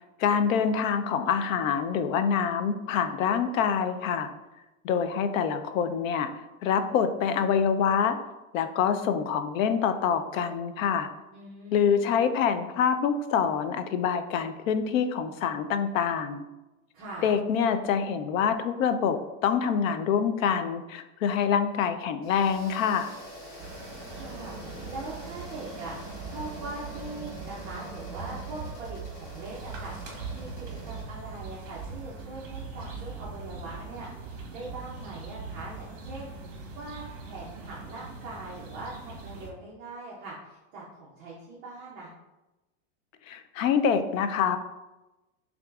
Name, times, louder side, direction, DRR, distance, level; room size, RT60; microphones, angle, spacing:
voice 1, 0.2-4.3 4.8-6.3 6.6-8.2 8.5-11.1 11.7-16.4 17.2-23.1 43.3-44.6, left 7 dB, 85° left, 9 dB, 0.5 m, -26 dB
voice 2, 11.3-12.2 16.9-17.3 24.1-24.5 24.9-25.9 26.2-29.9 30.3-42.1, right 2 dB, 20° right, -6 dB, 0.4 m, -42 dB
sound 1, 22.2-31.0, equal, 25° left, 0.8 m, -46 dB
sound 2, 23.6-39.5, right 4 dB, 45° right, 0.9 m, -41 dB
5.8 x 2.5 x 2.3 m, 1.0 s
supercardioid pair, 165°, 39 cm